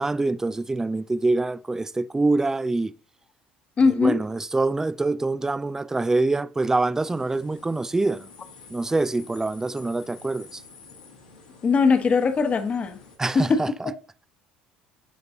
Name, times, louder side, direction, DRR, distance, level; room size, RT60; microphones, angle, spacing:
voice 1, 0.0-2.9 3.9-8.3 8.7-10.6 13.2-13.9, right 2 dB, 10° right, 0.4 m, -25 dB
voice 2, 3.8-4.2 11.6-13.0 13.3-13.6, left 4 dB, 30° left, 1.1 m, -20 dB
sound 1, 6.9-13.2, left 4 dB, 80° left, 2.0 m, -49 dB
12.0 x 5.2 x 2.8 m
figure-of-eight pair, 60°, 4 cm